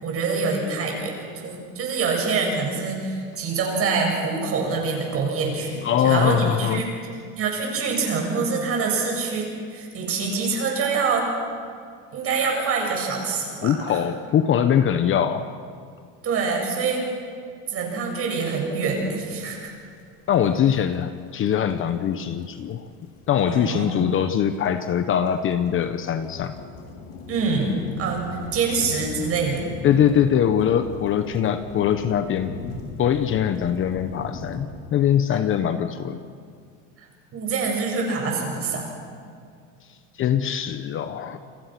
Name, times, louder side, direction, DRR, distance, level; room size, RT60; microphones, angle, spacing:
voice 1, 0.0-6.9 7.4-11.3 12.1-14.0 16.2-17.0 17.7-19.7 23.5-24.0 27.3-29.6 35.3-35.6 37.0-39.0, right 4 dB, 35° right, 0 dB, 7.4 m, -25 dB
voice 2, 5.8-6.8 13.6-15.5 20.3-22.9 23.3-26.5 29.8-32.5 33.0-36.2 40.2-41.4, left 9 dB, 35° left, 10 dB, 1.0 m, -22 dB
sound 1, 19.0-19.1 19.2-34.6, left 4 dB, 70° left, 6.1 m, -39 dB
29.0 x 23.0 x 6.1 m, 2.2 s
supercardioid pair, 145°, 37 cm